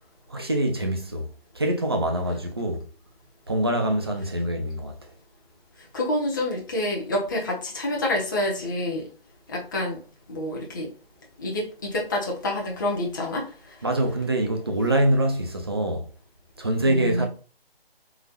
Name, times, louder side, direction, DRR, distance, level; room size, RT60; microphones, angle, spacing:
voice 1, 0.3-1.3 1.6-2.8 3.5-4.9 13.8-16.1 16.6-17.3, right 1 dB, 25° right, 0.5 m, -24 dB
voice 2, 5.9-9.0 9.5-10.0 10.3-10.9 11.4-13.5 16.8-17.3, left 1 dB, 20° left, 0.7 m, -27 dB
3.8 x 2.4 x 4.2 m
figure-of-eight pair, 155°, 30 cm